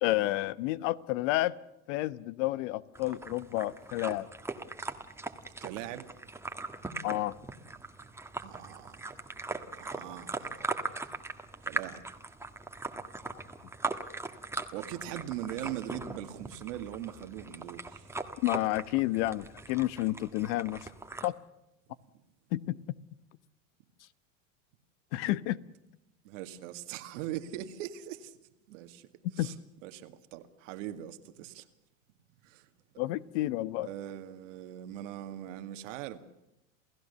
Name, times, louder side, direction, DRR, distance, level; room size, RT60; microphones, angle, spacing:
voice 1, 0.0-1.5 1.9-4.3 7.0-7.3 18.4-20.9 21.2-21.3 22.5-22.8 25.1-25.6 29.4-29.5 33.0-33.9, left 17 dB, 65° left, 1.0 m, -30 dB
sound 1, 3.0-21.3, right 3 dB, 5° right, 1.5 m, -40 dB
voice 2, 5.6-6.1 8.4-9.1 9.8-10.5 11.6-12.0 14.7-18.1 26.2-28.4 28.7-29.1 29.4-29.6 29.8-31.7 32.4-32.7 33.8-36.2, right 12 dB, 75° right, 2.1 m, -41 dB
28.5 x 16.0 x 6.9 m
supercardioid pair, 120°, 38 cm